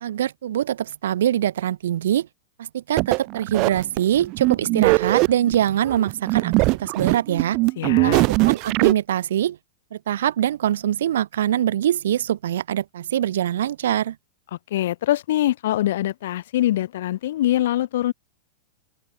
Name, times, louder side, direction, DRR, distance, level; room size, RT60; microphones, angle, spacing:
voice 1, 0.0-2.3 2.6-6.5 6.8-7.6 8.0-9.6 9.9-14.2, right 11 dB, 80° right, 0.8 m, -23 dB
sound 1, 3.0-8.9, right 25 dB, 35° right, 0.6 m, -21 dB
voice 2, 7.8-8.2 14.7-18.1, left 13 dB, 65° left, 1.9 m, -23 dB
open air
supercardioid pair, 165°, 0 cm